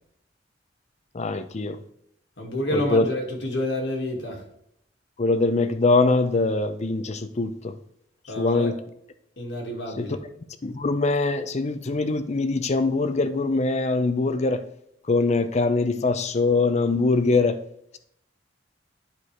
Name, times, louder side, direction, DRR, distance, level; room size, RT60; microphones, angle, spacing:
voice 1, 1.1-1.8 2.7-3.0 5.2-7.7 8.4-8.8 10.0-10.1 10.6-14.6 15.1-17.6, left 3 dB, 40° left, 11 dB, 0.5 m, -23 dB
voice 2, 2.4-4.4 8.3-8.7 9.4-10.2, left 1 dB, 70° left, 1 dB, 1.9 m, -29 dB
11.0 x 4.6 x 3.3 m, 0.74 s
head